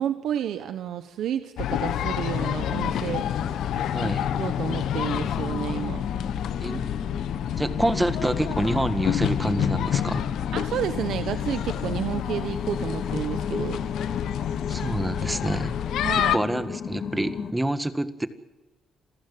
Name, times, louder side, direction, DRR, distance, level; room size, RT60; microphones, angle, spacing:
voice 1, 0.0-3.2 4.0-4.1 4.4-6.0 10.5-13.8 16.0-16.3, right 10 dB, 75° right, 9 dB, 1.3 m, -30 dB
sound 1, 1.6-16.4, left 10 dB, 80° left, 1.2 m, -28 dB
sound 2, 2.6-17.5, left 6 dB, 55° left, 2.7 m, -35 dB
voice 2, 3.9-4.3 6.6-6.8 7.6-10.3 14.7-15.7 16.1-18.3, right 1 dB, 10° right, 10 dB, 1.7 m, -27 dB
27.5 x 15.0 x 7.7 m, 1.1 s
cardioid pair, 90°, 0 cm